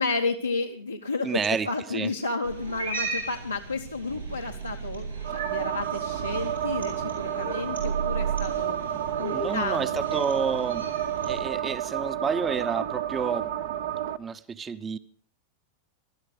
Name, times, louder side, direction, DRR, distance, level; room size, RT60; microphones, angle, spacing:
voice 1, 0.0-8.8 9.2-10.2, left 3 dB, 85° left, 0 dB, 1.0 m, -32 dB
voice 2, 1.2-2.1 9.3-10.9 11.2-13.5 14.2-15.0, right 5 dB, 20° right, 14 dB, 0.8 m, -30 dB
Cat, 2.4-11.4, right 4 dB, 90° right, 7.2 m, -35 dB
sound 1, 5.2-14.2, right 11 dB, 55° right, 0.7 m, -30 dB
19.5 x 13.0 x 5.2 m, 0.43 s
figure-of-eight pair, 90°, 0 cm